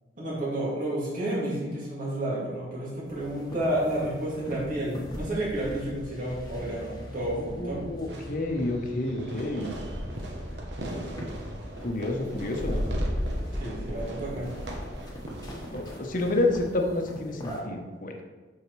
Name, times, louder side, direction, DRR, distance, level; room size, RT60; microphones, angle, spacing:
voice 1, 0.2-7.8 13.6-14.5, right 1 dB, 50° right, -6 dB, 2.3 m, -31 dB
sound 1, 3.1-17.6, equal, 20° left, 1.2 m, -37 dB
voice 2, 7.5-9.8 11.8-12.8 15.7-18.2, left 2 dB, 50° left, 3 dB, 0.9 m, -29 dB
Fireworks, 8.1-17.1, right 1 dB, 65° right, 1.0 m, -42 dB
8.0 x 5.6 x 3.2 m, 1.3 s
head